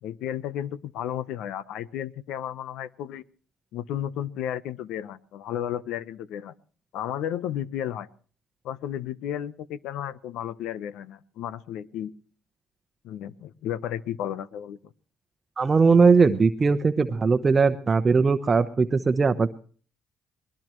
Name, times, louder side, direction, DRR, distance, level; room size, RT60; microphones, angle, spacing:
voice 1, 0.0-3.2 3.7-6.5 6.9-8.1 8.6-12.1 13.0-14.9, left 10 dB, 80° left, 16 dB, 0.9 m, -33 dB
voice 2, 15.6-19.5, right 4 dB, 30° right, 7 dB, 0.9 m, -20 dB
21.0 x 20.5 x 3.1 m, 0.42 s
cardioid pair, 95°, 0 cm